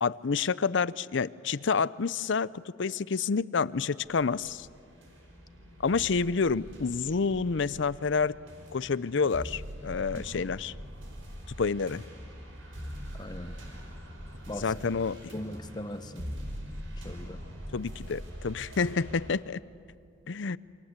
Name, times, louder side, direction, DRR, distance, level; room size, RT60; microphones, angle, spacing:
voice 1, 0.0-2.5 2.8-4.7 5.8-8.3 8.7-10.7 11.6-12.0 14.6-15.3 17.7-19.6 20.3-20.6, left 5 dB, 65° left, 19 dB, 0.6 m, -28 dB
sound 1, 4.0-19.3, equal, 85° right, 5.0 m, -43 dB
voice 2, 10.1-10.5 13.1-13.6 14.5-14.7 15.3-16.3 17.0-17.4, left 1 dB, 20° left, 9 dB, 1.3 m, -40 dB
28.5 x 25.0 x 8.2 m, 2.6 s
head